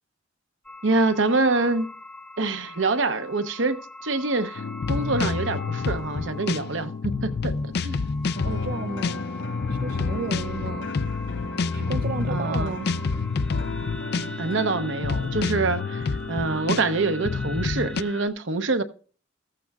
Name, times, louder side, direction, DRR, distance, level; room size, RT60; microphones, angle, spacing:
sound 1, 0.6-18.3, left 1 dB, 5° left, 0.7 m, -43 dB
voice 1, 0.8-1.9 2.4-8.1 12.3-12.7 14.4-18.8, right 3 dB, 70° right, 0.8 m, -26 dB
sound 2, 4.6-18.0, left 4 dB, 55° left, 0.4 m, -29 dB
sound 3, 8.3-14.9, left 2 dB, 85° left, 4.6 m, -35 dB
voice 2, 8.4-9.2 9.7-10.9 11.7-12.9, right 4 dB, 50° right, 0.4 m, -33 dB
14.5 x 14.0 x 2.4 m
head